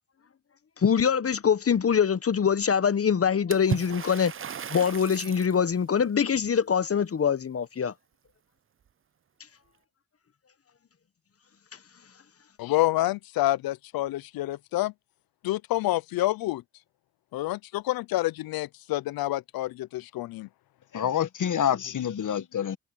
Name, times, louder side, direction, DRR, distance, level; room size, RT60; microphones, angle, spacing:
voice 1, 0.8-4.3 4.7-7.9, left 7 dB, 40° left, 1.0 m, -24 dB
Water / Splash splatter, 3.5-5.6, right 7 dB, 35° right, 0.7 m, -35 dB
voice 2, 12.6-14.9 15.4-16.6 17.3-20.5, left 16 dB, 85° left, 0.7 m, -28 dB
voice 3, 20.9-22.8, left 9 dB, 60° left, 1.6 m, -27 dB
supercardioid pair, 50°, 35 cm